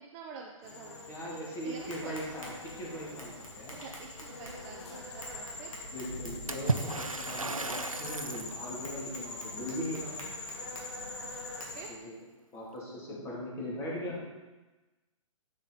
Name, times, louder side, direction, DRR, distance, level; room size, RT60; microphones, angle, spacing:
voice 1, 0.0-1.0 1.3-2.2 3.7-5.7 9.1-9.2 11.2-11.9, right 6 dB, 25° right, 1 dB, 0.6 m, -48 dB
sound 1, 0.6-11.9, left 3 dB, 50° left, 1.6 m, -44 dB
voice 2, 1.1-3.7 5.9-10.1 11.9-12.1 12.5-14.2, equal, 15° left, -5 dB, 2.5 m, -39 dB
Tap, 1.8-11.7, equal, 80° left, 2.4 m, -48 dB
Water / Splash splatter, 6.5-8.6, right 3 dB, 90° right, 0.6 m, -34 dB
8.1 x 7.0 x 3.9 m, 1.2 s
figure-of-eight pair, 120°, 17 cm